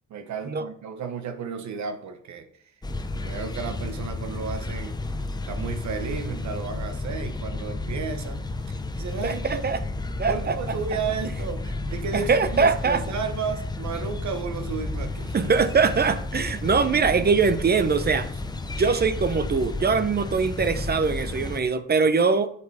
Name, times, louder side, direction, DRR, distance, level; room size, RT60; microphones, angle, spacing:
voice 1, 0.1-2.7 3.1-5.2 5.5-9.6 10.3-15.5, right 6 dB, 65° right, 8 dB, 1.1 m, -33 dB
sound 1, 2.8-21.6, left 2 dB, 15° left, 0.7 m, -32 dB
voice 2, 9.2-9.8 10.2-10.6 12.1-13.0 15.3-18.3 18.8-22.5, right 5 dB, 35° right, 12 dB, 0.7 m, -22 dB
8.3 x 5.0 x 4.7 m, 0.65 s
cardioid pair, 90°, 30 cm